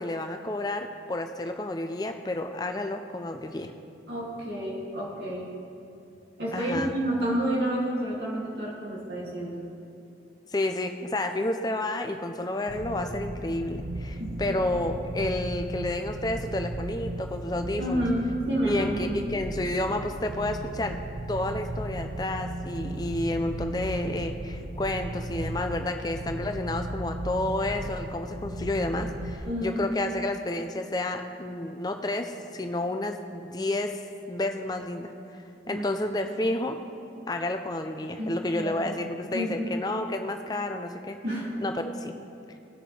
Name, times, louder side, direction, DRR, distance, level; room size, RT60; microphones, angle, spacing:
voice 1, 0.0-3.7 6.5-7.0 10.5-18.0 18.6-21.0 21.3-34.0 34.3-36.8 37.3-41.2 41.6-42.1, left 2 dB, 20° left, 5 dB, 0.5 m, -30 dB
voice 2, 4.1-5.5 6.4-9.6 14.2-14.4 17.8-19.2 29.4-29.9 35.7-35.8 38.2-39.8 41.2-41.5, equal, 75° right, -5 dB, 2.6 m, -30 dB
sound 1, 12.7-29.4, right 1 dB, 45° right, 0.5 m, -35 dB
17.5 x 6.4 x 3.3 m, 2.6 s
head